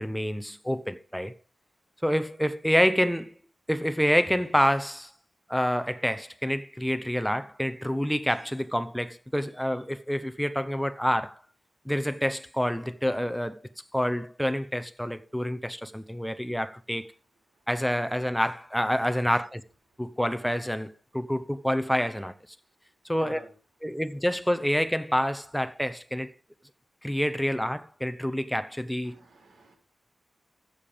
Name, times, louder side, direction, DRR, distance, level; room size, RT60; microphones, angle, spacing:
voice 1, 0.0-1.3 2.0-3.3 3.7-5.1 5.5-11.4 11.8-13.6 13.9-17.1 17.7-19.6 20.0-22.3 23.0-23.4 23.8-26.3 27.0-29.2, equal, ahead, 0.8 m, -27 dB
voice 2, 23.1-23.5 29.1-29.7, right 3 dB, 80° right, 5.0 m, -49 dB
14.5 x 7.1 x 5.1 m
wide cardioid pair, 115°, 0 cm